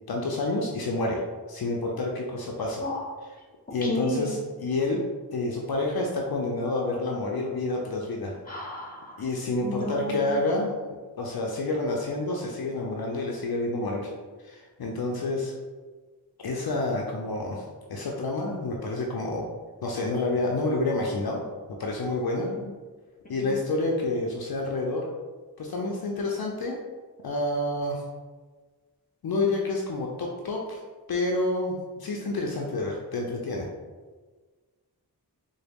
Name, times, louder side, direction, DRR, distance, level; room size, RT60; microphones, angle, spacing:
voice 1, 0.1-1.2 1.5-2.8 3.7-5.0 5.3-8.4 9.2-10.7 11.2-14.1 14.4-15.5 16.4-17.6 17.9-19.5 19.8-21.5 21.8-22.5 23.3-25.1 25.6-26.8 27.2-28.0 29.2-30.8 31.1-33.7, left 2 dB, 65° left, -1 dB, 0.5 m, -28 dB
voice 2, 3.8-4.3 8.5-9.2 9.6-10.4 22.4-22.5 23.4-23.5, left 1 dB, 20° left, -2 dB, 1.0 m, -32 dB
3.8 x 2.1 x 3.4 m, 1.4 s
wide cardioid pair, 50°, 39 cm